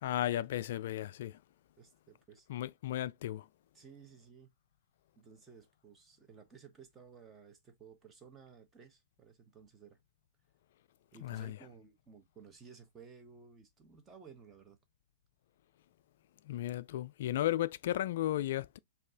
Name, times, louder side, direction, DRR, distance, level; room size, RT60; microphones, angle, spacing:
voice 1, 0.0-1.4 2.5-3.5 11.2-11.6 16.4-18.8, left 13 dB, 55° left, 0.3 m, -34 dB
voice 2, 1.8-2.5 3.7-4.5 5.2-10.0 11.1-14.8, right 6 dB, 15° right, 1.2 m, -56 dB
5.2 x 2.7 x 3.7 m
figure-of-eight pair, 110°, 0 cm